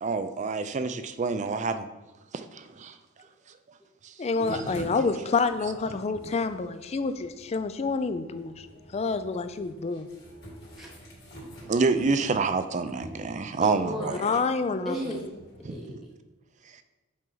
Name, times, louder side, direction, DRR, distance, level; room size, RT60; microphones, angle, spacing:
voice 1, 0.0-1.9 2.3-2.9 4.5-4.6 11.7-14.2 15.6-15.7, right 4 dB, 35° right, 10 dB, 0.4 m, -27 dB
voice 2, 4.2-8.5 8.9-10.1 14.2-15.0, left 4 dB, 30° left, 11 dB, 0.4 m, -28 dB
sound 1, 4.4-15.7, right 1 dB, 50° left, 2.3 m, -45 dB
voice 3, 10.8-11.7 13.6-14.3 14.8-15.3 15.7-15.9, equal, ahead, -3 dB, 0.7 m, -36 dB
7.4 x 4.5 x 3.9 m, 1.1 s
head